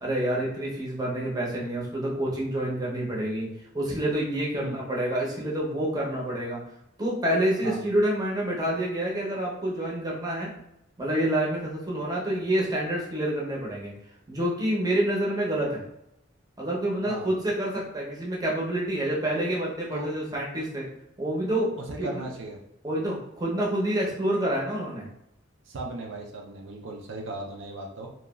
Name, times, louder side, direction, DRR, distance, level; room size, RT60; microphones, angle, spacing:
voice 1, 0.0-3.5 3.7-6.6 7.0-10.5 11.0-13.9 14.3-15.8 16.6-20.8 21.2-22.2 22.8-25.1, right 1 dB, 20° right, -4 dB, 0.6 m, -28 dB
voice 2, 21.8-22.6 25.7-28.1, right 2 dB, 65° right, 0 dB, 0.4 m, -37 dB
2.9 x 2.3 x 2.2 m, 0.80 s
head